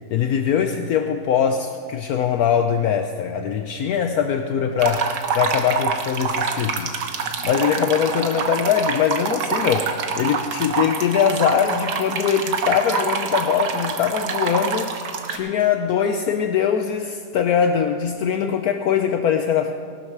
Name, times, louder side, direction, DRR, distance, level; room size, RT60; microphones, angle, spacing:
voice 1, 0.1-7.0 7.4-9.9 10.2-15.0 15.3-19.7, left 8 dB, 70° left, 6 dB, 1.1 m, -22 dB
sound 1, 4.8-15.4, right 5 dB, 80° right, 1.7 m, -26 dB
19.0 x 12.0 x 4.8 m, 2.1 s
omnidirectional pair, 1.8 m